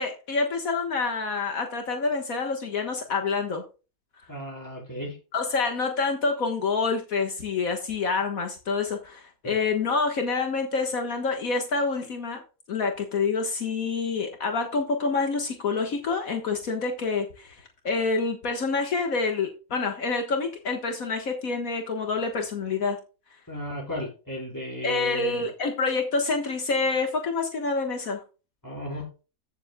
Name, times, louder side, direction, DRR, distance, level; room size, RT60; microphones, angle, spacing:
voice 1, 0.0-3.6 5.3-12.4 12.7-17.6 17.8-23.0 24.8-28.2, left 4 dB, 70° left, 4 dB, 1.8 m, -27 dB
voice 2, 4.3-5.2 9.4-9.6 23.5-25.5 28.6-29.1, left 1 dB, 10° left, -3 dB, 4.7 m, -34 dB
15.0 x 7.4 x 2.3 m, 0.33 s
omnidirectional pair, 1.6 m